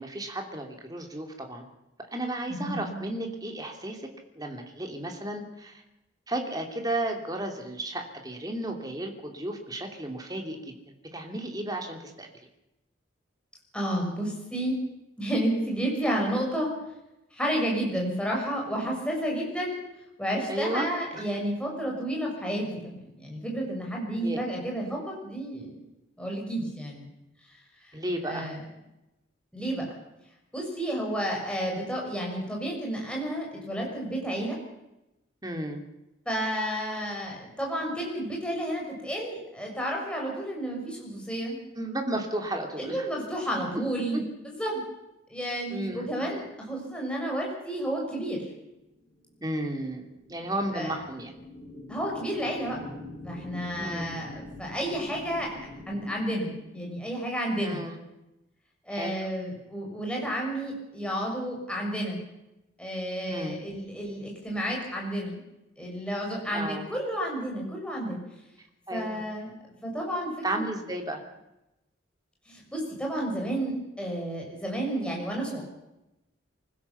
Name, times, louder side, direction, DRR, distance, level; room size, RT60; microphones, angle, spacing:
voice 1, 0.0-1.6 2.1-4.0 4.4-5.8 6.3-12.3 20.5-21.2 24.2-24.4 27.9-28.5 35.4-35.8 41.8-43.1 44.1-44.2 45.7-46.1 49.4-50.0 50.3-51.3 53.8-54.1 57.6-58.0 58.9-59.2 63.3-63.6 66.5-66.9 68.9-69.2 70.4-71.2, right 1 dB, 20° right, 3 dB, 2.9 m, -33 dB
voice 2, 2.5-3.0 13.7-14.8 15.2-16.7 17.3-19.8 20.2-25.7 26.2-27.1 28.2-28.6 29.5-29.9 30.5-34.6 36.2-41.6 42.8-44.8 45.3-48.5 50.7-50.9 51.9-52.8 53.2-55.5 55.9-57.8 58.9-62.2 62.8-65.4 65.8-68.2 68.9-69.5 69.8-70.6 72.5-75.6, right 1 dB, 5° left, -1 dB, 6.5 m, -31 dB
sound 1, 48.6-57.0, left 1 dB, 45° left, 7.9 m, -45 dB
25.0 x 16.0 x 7.1 m, 0.93 s
head